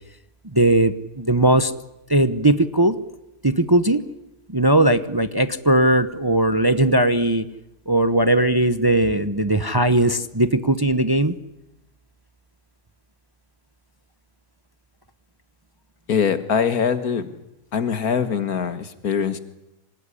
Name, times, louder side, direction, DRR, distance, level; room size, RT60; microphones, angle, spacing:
voice 1, 0.5-1.7 2.1-3.0 3.4-4.0 4.5-7.5 7.9-11.3, right 1 dB, 20° right, 11 dB, 0.8 m, -18 dB
voice 2, 16.1-17.3 17.7-19.4, left 7 dB, 80° left, 11 dB, 2.1 m, -22 dB
26.5 x 19.0 x 10.0 m, 0.92 s
omnidirectional pair, 1.6 m